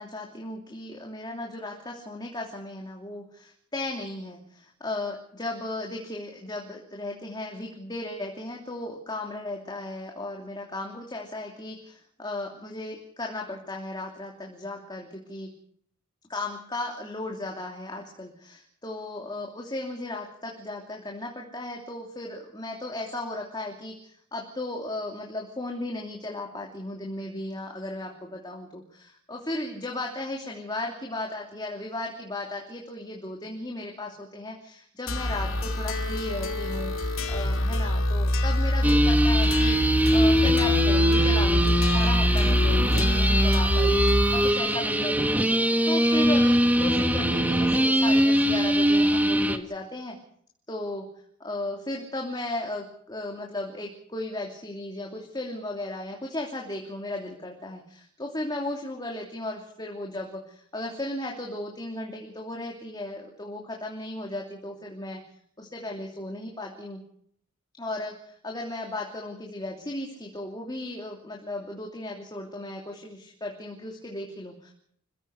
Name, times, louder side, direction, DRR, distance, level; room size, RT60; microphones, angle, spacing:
voice 1, 0.0-15.5 16.3-50.2 50.7-51.1 51.4-65.2 65.6-67.0 67.8-74.7, left 2 dB, 20° left, 0 dB, 2.9 m, -35 dB
sound 1, 35.1-44.5, left 1 dB, 75° left, 2.5 m, -24 dB
sound 2, 38.8-49.6, equal, 10° right, 1.5 m, -22 dB
27.0 x 16.0 x 6.6 m, 0.67 s
head